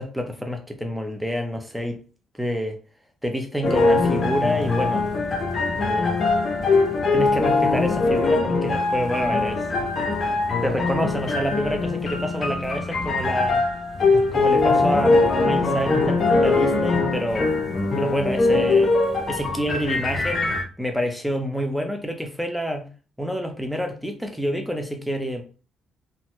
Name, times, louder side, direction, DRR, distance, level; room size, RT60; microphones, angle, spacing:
voice 1, 0.0-2.0 2.3-2.8 3.2-5.1 5.8-6.2 7.1-9.7 10.6-13.7 14.1-17.5 18.0-18.9 19.3-22.9 23.2-25.4, equal, ahead, 0.6 m, -28 dB
sound 1, 3.6-20.6, left 3 dB, 45° left, 0.6 m, -22 dB
2.7 x 2.1 x 2.9 m
cardioid pair, 90°, 0 cm